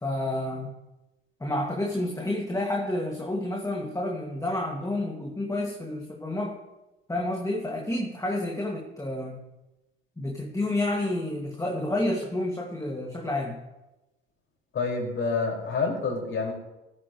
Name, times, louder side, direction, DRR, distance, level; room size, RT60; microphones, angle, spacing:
voice 1, 0.0-0.7 1.4-6.6 7.1-9.4 10.2-13.6, left 1 dB, 10° left, 1 dB, 2.2 m, -29 dB
voice 2, 14.7-16.5, left 4 dB, 40° left, 0 dB, 5.6 m, -28 dB
18.5 x 14.0 x 3.2 m, 1.0 s
hypercardioid pair, 60°, 31 cm